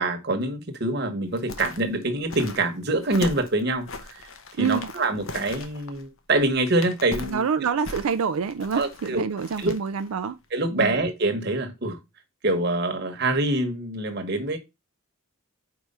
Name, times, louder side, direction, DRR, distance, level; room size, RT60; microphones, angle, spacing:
voice 1, 0.0-4.2 4.6-7.4 8.7-9.2 9.6-9.8 10.5-12.0 12.4-14.6, right 2 dB, 50° right, 1.2 m, -25 dB
sound 1, 1.3-10.1 10.4-10.5, left 3 dB, 70° left, 0.9 m, -39 dB
voice 2, 4.5-4.9 7.3-10.4 10.8-10.9, right 6 dB, 85° right, 0.4 m, -26 dB
4.8 x 4.7 x 5.4 m
head